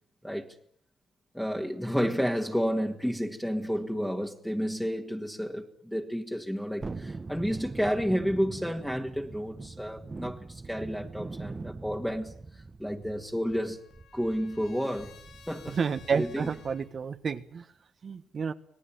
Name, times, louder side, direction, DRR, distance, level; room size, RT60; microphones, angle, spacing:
voice 1, 1.3-13.8 14.1-15.1 15.5-15.8 16.1-16.5, equal, 5° left, 2.0 m, -31 dB
Thunderstorm, 6.8-17.0 17.4-17.5, right 3 dB, 25° right, 1.2 m, -43 dB
Trumpet, 13.0-16.9, left 7 dB, 70° left, 6.2 m, -56 dB
voice 2, 15.7-17.6 18.0-18.5, right 6 dB, 45° right, 1.2 m, -30 dB
26.0 x 18.0 x 9.2 m
cardioid pair, 90°, 0 cm